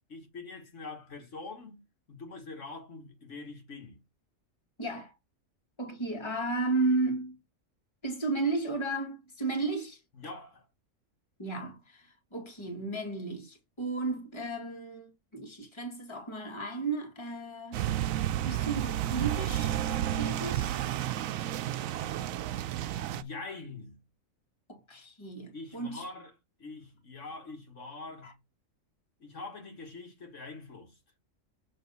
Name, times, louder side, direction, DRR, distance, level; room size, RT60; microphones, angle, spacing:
voice 1, 0.0-1.8 2.1-4.0 10.1-10.7 23.1-24.0 25.5-26.3 26.6-28.4 29.2-31.0, left 3 dB, 65° left, 1.9 m, -44 dB
voice 2, 4.8-5.1 5.8-7.4 8.0-10.0 11.4-17.8 18.4-19.8 20.1-20.8 24.7-26.0 28.2-28.3, right 3 dB, 20° left, 1.7 m, -34 dB
sound 1, 17.7-23.2, right 12 dB, 90° right, 1.0 m, -31 dB
6.7 x 3.3 x 5.3 m
omnidirectional pair, 1.4 m